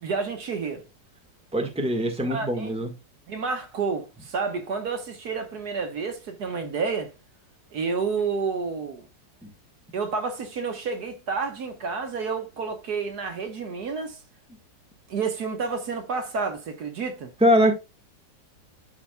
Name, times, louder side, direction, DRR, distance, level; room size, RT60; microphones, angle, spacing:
voice 1, 0.0-0.8 2.3-2.7 3.3-7.1 7.7-9.1 9.9-14.2 15.1-17.3, right 5 dB, 65° right, 1.6 m, -30 dB
voice 2, 1.5-2.9 17.4-17.7, equal, 5° right, 1.4 m, -22 dB
12.5 x 4.9 x 2.3 m
omnidirectional pair, 1.9 m